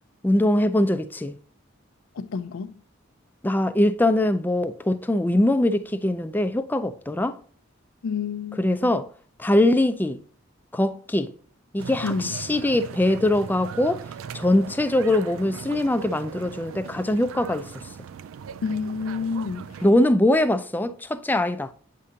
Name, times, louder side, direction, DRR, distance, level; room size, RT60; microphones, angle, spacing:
voice 1, 0.2-1.4 3.4-7.4 8.6-9.1 9.4-10.2 10.7-11.3 11.7-14.0 14.3-17.7 19.8-21.7, left 1 dB, 10° left, 0.3 m, -22 dB
voice 2, 2.2-2.7 8.0-8.9 12.0-12.3 18.6-19.7, left 5 dB, 85° left, 0.4 m, -29 dB
sound 1, 11.8-19.9, right 7 dB, 85° right, 0.3 m, -39 dB
8.4 x 5.0 x 2.8 m
head